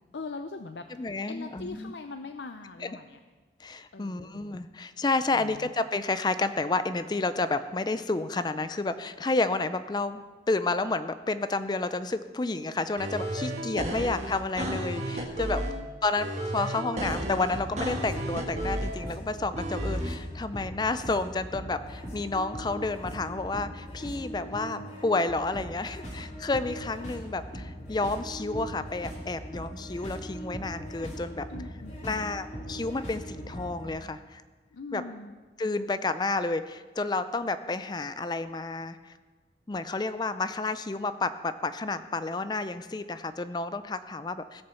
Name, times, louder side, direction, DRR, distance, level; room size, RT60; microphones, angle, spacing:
voice 1, 0.1-0.8 1.3-3.2 3.9-4.4 5.3-5.7 13.5-14.0 15.6-15.9 31.5-32.4 34.7-35.3, left 3 dB, 80° left, 7 dB, 0.6 m, -42 dB
voice 2, 0.9-1.9 2.8-2.9 3.6-10.2 10.5-15.6 16.0-31.5 32.0-34.4 34.9-35.0 35.6-39.1 39.7-44.6, left 3 dB, 25° left, 12 dB, 0.4 m, -30 dB
sound 1, 13.0-15.8 16.2-19.0 19.6-20.1, right 1 dB, 40° right, 1.6 m, -32 dB
sound 2, 17.0-33.9, equal, 40° left, 2.6 m, -40 dB
16.5 x 6.6 x 7.0 m, 1.4 s
head